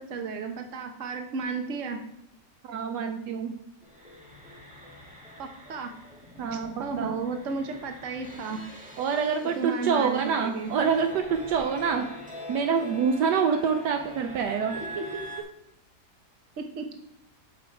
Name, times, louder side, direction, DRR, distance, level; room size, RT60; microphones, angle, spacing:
voice 1, 0.0-2.0 5.4-5.9 6.5-8.6 9.6-10.7 14.7-15.2 16.6-17.0, right 4 dB, 50° right, 5 dB, 1.3 m, -33 dB
voice 2, 2.6-3.6 6.4-7.4 9.0-12.1 12.5-14.8, right 6 dB, 75° right, 5 dB, 1.2 m, -26 dB
sound 1, 3.8-15.4, equal, 5° right, 1.4 m, -44 dB
7.8 x 6.9 x 4.5 m, 0.76 s
omnidirectional pair, 1.9 m